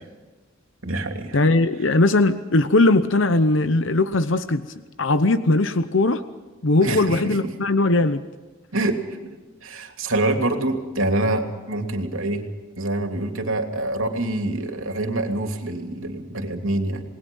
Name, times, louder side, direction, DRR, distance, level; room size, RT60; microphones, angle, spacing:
voice 1, 0.8-1.4 6.8-7.4 8.7-9.0 9.6-12.4 12.8-17.0, right 2 dB, 80° right, 5 dB, 2.9 m, -25 dB
voice 2, 1.3-4.7 5.0-6.2 6.6-8.2, left 2 dB, 65° left, 12 dB, 0.9 m, -19 dB
28.0 x 20.0 x 5.5 m, 1.2 s
head